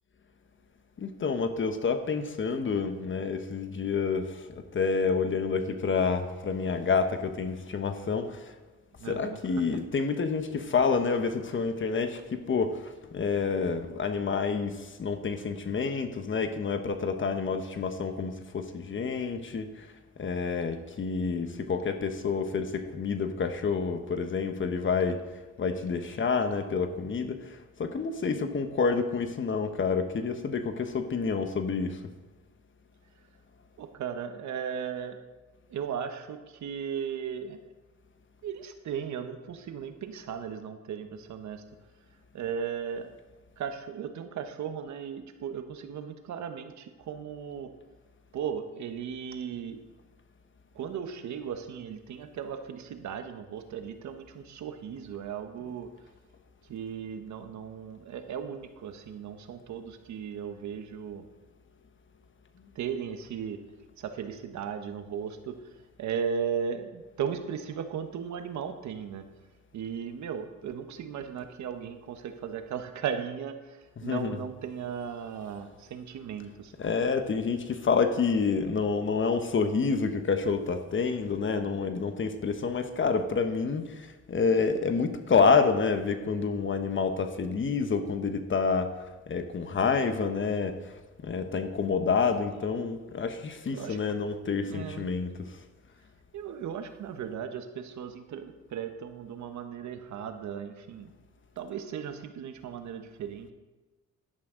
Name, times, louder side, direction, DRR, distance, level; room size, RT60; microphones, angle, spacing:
voice 1, 1.0-8.5 9.1-19.9 20.2-25.2 25.6-32.0 74.0-74.4 76.8-88.9 89.3-90.8 91.2-95.6, left 5 dB, 40° left, 8 dB, 1.1 m, -28 dB
voice 2, 9.0-9.7 33.8-35.2 35.7-37.7 38.4-41.6 42.3-43.2 43.6-47.7 48.3-49.8 50.7-55.9 56.7-61.3 62.7-63.6 64.0-65.6 66.0-69.2 69.7-76.7 93.7-94.0 94.6-95.1 96.3-101.1 101.6-103.5, right 7 dB, 70° right, 7 dB, 1.2 m, -36 dB
11.5 x 11.0 x 3.9 m, 1.2 s
cardioid pair, 90°, 30 cm